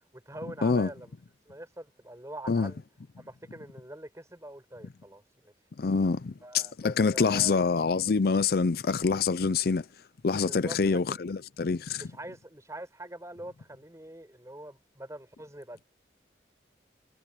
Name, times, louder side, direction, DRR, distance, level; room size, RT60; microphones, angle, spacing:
voice 1, 0.1-1.1 1.5-2.8 3.2-5.5 6.4-7.9 10.4-11.2 12.0-15.9, right 1 dB, 20° right, 4.5 m, -44 dB
voice 2, 5.8-9.9 10.2-12.0, left 4 dB, 60° left, 0.5 m, -26 dB
head